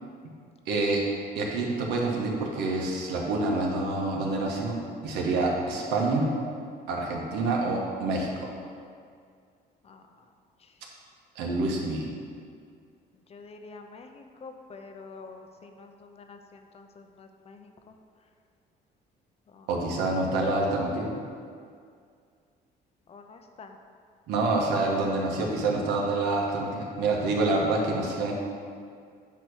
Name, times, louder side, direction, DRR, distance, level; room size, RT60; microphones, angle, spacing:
voice 1, 0.7-1.0 1.3-4.8 5.0-6.3 6.9-8.5 11.3-12.1 19.7-21.1 24.3-28.3, right 2 dB, 90° right, -1 dB, 1.3 m, -27 dB
voice 2, 9.8-10.3 10.6-10.8 13.1-18.0 19.5-19.7 23.1-23.8, left 4 dB, 35° left, 5 dB, 0.7 m, -48 dB
9.0 x 3.0 x 6.3 m, 2.2 s
cardioid pair, 110°, 17 cm